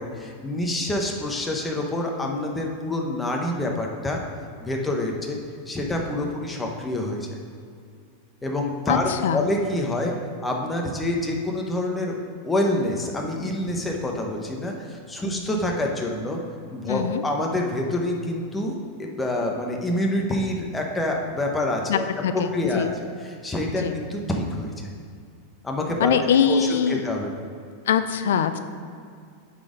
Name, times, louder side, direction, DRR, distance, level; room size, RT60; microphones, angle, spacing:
voice 1, 0.0-4.2 4.6-5.4 5.7-7.3 8.4-10.1 10.4-12.2 12.4-16.4 16.7-22.1 22.3-22.9 23.2-24.9 25.6-26.2 26.5-27.4, left 1 dB, 10° left, 0 dB, 0.9 m, -27 dB
voice 2, 8.9-9.4 15.2-15.4 16.9-17.2 21.9-22.9 23.8-24.0 26.0-27.0 27.9-28.6, left 7 dB, 85° left, 10 dB, 0.4 m, -23 dB
8.8 x 4.1 x 5.0 m, 2.3 s
supercardioid pair, 135°, 0 cm